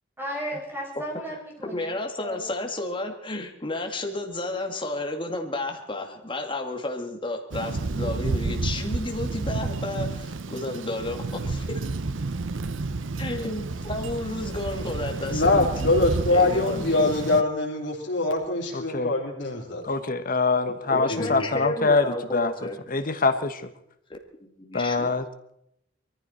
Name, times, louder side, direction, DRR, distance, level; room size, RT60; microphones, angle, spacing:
voice 1, 0.2-2.5, equal, 10° right, -3 dB, 5.9 m, -35 dB
voice 2, 1.3-11.8 13.2-16.0 16.3-16.8 20.9-22.8 24.1-25.1, left 2 dB, 25° left, 3 dB, 2.3 m, -32 dB
Thunder, 7.5-17.4, right 3 dB, 85° right, 0.8 m, -30 dB
voice 3, 15.3-19.8 20.6-20.7 21.1-21.5, left 2 dB, 65° left, -1 dB, 3.7 m, -23 dB
voice 4, 18.7-19.1 19.8-22.5 22.9-23.7 24.7-25.3, left 3 dB, 45° left, 10 dB, 1.2 m, -24 dB
22.5 x 14.0 x 4.4 m, 0.76 s
head